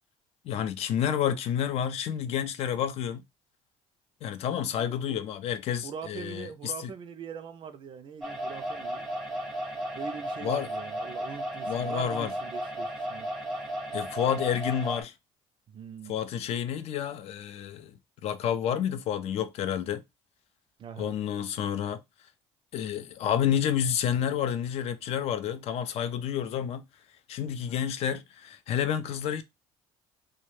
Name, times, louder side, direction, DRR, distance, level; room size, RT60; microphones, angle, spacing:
voice 1, 0.4-3.2 4.2-6.9 10.4-10.7 11.7-12.3 13.9-15.1 16.1-17.9 18.2-20.0 21.0-22.0 22.7-26.8 27.3-29.4, left 9 dB, 55° left, 0.4 m, -29 dB
voice 2, 4.8-5.2 5.8-9.0 9.9-13.3 15.7-16.2 20.8-21.2, right 7 dB, 40° right, 0.3 m, -42 dB
sound 1, 8.2-15.0, equal, ahead, 0.6 m, -34 dB
2.2 x 2.0 x 3.0 m
cardioid pair, 120°, 13 cm